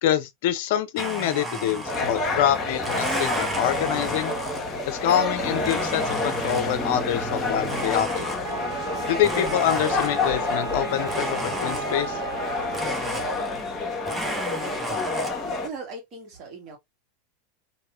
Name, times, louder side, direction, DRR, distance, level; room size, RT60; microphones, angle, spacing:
voice 1, 0.0-4.3 4.9-8.3 9.1-12.2, left 11 dB, 65° left, 0.5 m, -26 dB
Domestic sounds home sounds, 1.0-2.4 2.8-4.9 5.6-6.9 7.6-8.8 9.2-10.4 11.0-12.2 12.7-13.8 14.0-15.3, right 2 dB, 15° right, 0.9 m, -33 dB
sound 1, 1.8-15.7, left 3 dB, 25° left, 1.4 m, -28 dB
Wind instrument woodwind instrument, 8.4-13.0, right 5 dB, 70° right, 0.8 m, -35 dB
voice 2, 15.6-16.8, right 3 dB, 45° right, 1.7 m, -38 dB
3.0 x 2.9 x 2.5 m
hypercardioid pair, 95°, 0 cm